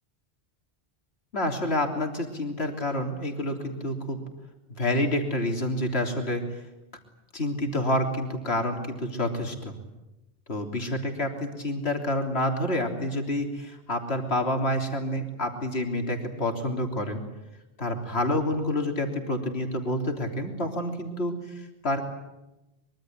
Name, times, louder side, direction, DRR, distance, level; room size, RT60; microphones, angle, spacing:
voice 1, 1.3-4.2 4.8-6.6 7.3-9.7 10.5-17.2 17.8-22.1, left 1 dB, 70° left, 4 dB, 3.7 m, -28 dB
24.5 x 23.0 x 9.2 m, 0.98 s
omnidirectional pair, 1.1 m